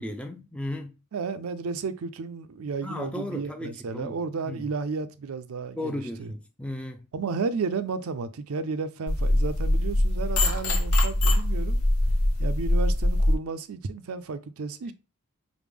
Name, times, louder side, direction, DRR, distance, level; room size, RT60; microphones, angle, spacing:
voice 1, 0.0-1.0 2.8-4.2 4.5-4.7 5.8-7.1, left 1 dB, 5° left, 0.3 m, -35 dB
voice 2, 1.1-6.3 7.1-11.8 12.4-14.9, right 4 dB, 75° right, 0.5 m, -33 dB
sound 1, 9.1-13.4, left 1 dB, 85° left, 0.9 m, -23 dB
4.9 x 2.1 x 3.4 m
head